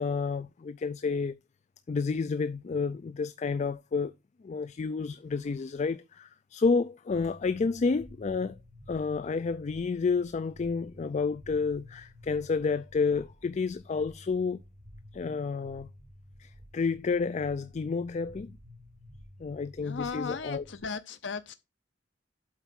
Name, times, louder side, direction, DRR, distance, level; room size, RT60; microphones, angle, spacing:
voice 1, 0.0-1.4 1.9-4.1 4.4-8.6 8.9-14.6 15.1-15.9 16.4-18.6 19.4-20.6, left 4 dB, 40° left, 0.4 m, -30 dB
sound 1, 7.1-20.8, left 1 dB, 80° right, 3.2 m, -52 dB
voice 2, 19.8-21.5, left 5 dB, 80° left, 0.7 m, -36 dB
8.1 x 4.6 x 5.9 m
head